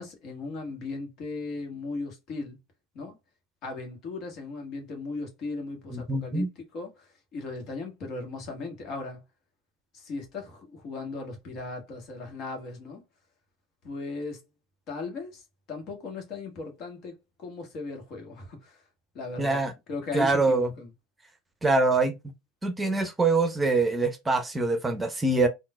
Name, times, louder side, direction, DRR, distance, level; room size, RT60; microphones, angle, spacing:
voice 1, 0.0-2.6 2.9-3.2 3.6-9.2 9.9-13.0 13.8-14.4 14.9-15.4 15.7-18.8 19.1-19.6 19.9-20.9, left 3 dB, 50° left, 1.5 m, -37 dB
voice 2, 5.9-6.5 19.4-19.7 20.1-20.7 21.6-22.1 22.6-25.5, right 3 dB, 15° right, 0.8 m, -24 dB
3.7 x 2.5 x 2.3 m
hypercardioid pair, 80°, 0 cm